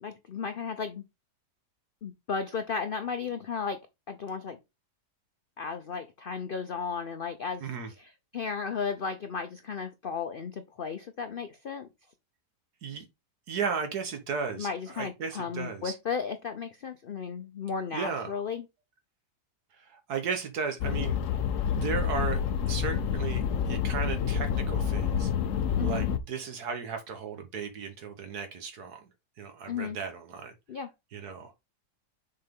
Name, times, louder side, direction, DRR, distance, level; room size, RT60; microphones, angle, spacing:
voice 1, 0.0-1.0 2.0-3.8 4.1-4.6 5.6-7.7 8.0-11.9 14.6-18.6 25.8-26.1 29.7-30.0 30.7-30.9, left 6 dB, 80° left, 0.5 m, -34 dB
voice 2, 13.5-14.7 14.9-15.9 17.9-18.3 19.8-21.2 21.7-25.3 25.8-29.0 29.4-30.5 31.1-31.5, right 5 dB, 70° right, 1.5 m, -35 dB
sound 1, 20.8-26.2, left 7 dB, 60° left, 0.9 m, -28 dB
6.6 x 4.2 x 3.5 m
omnidirectional pair, 1.8 m